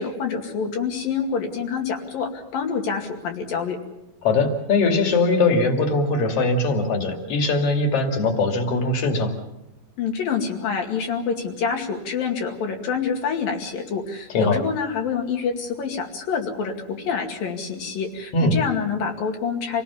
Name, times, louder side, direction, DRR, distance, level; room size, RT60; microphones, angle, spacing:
voice 1, 0.0-3.8 10.0-19.8, left 6 dB, 70° left, 3 dB, 4.0 m, -27 dB
voice 2, 4.2-9.3 14.3-14.6 18.3-18.6, left 3 dB, 45° left, 4 dB, 3.2 m, -21 dB
27.0 x 18.5 x 7.1 m, 0.91 s
omnidirectional pair, 4.3 m